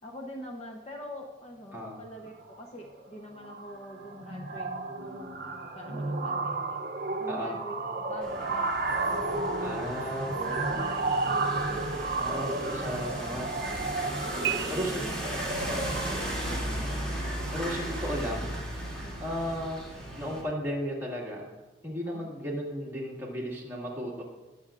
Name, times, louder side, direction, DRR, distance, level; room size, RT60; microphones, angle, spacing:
voice 1, 0.0-4.7 5.0-6.8 7.1-8.7 9.1-10.0 10.3-13.0 13.5-13.9 14.2-15.9 16.2-17.4 19.0-19.2 22.0-22.3, equal, 35° left, 0 dB, 0.8 m, -45 dB
sound 1, 2.3-2.6 2.9-3.1 3.4-18.3, right 3 dB, 50° right, 0.7 m, -33 dB
sound 2, 8.2-20.4, right 1 dB, 5° left, 2.7 m, -36 dB
voice 2, 9.6-10.4 12.2-13.5 14.7-15.0 15.6-15.9 17.5-18.5 19.2-19.8 20.2-21.5 21.8-24.2, equal, 15° right, -4 dB, 2.0 m, -34 dB
sound 3, 10.9-12.1 14.4-15.9, right 13 dB, 70° right, 0.3 m, -38 dB
20.5 x 7.0 x 2.5 m, 1.2 s
head